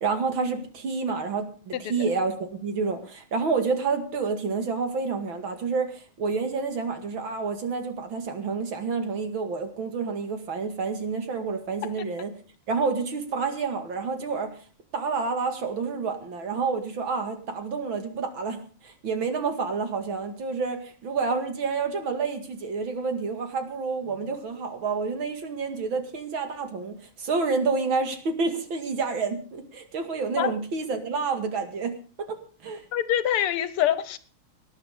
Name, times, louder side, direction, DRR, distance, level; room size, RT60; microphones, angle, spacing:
voice 1, 0.0-12.3 12.7-14.6 14.9-32.8, right 4 dB, 65° right, 6 dB, 2.9 m, -29 dB
voice 2, 1.7-2.1 11.8-11.9 30.4-30.5 32.9-34.2, left 11 dB, 90° left, 14 dB, 2.0 m, -25 dB
19.0 x 10.5 x 5.0 m, 0.39 s
omnidirectional pair, 2.4 m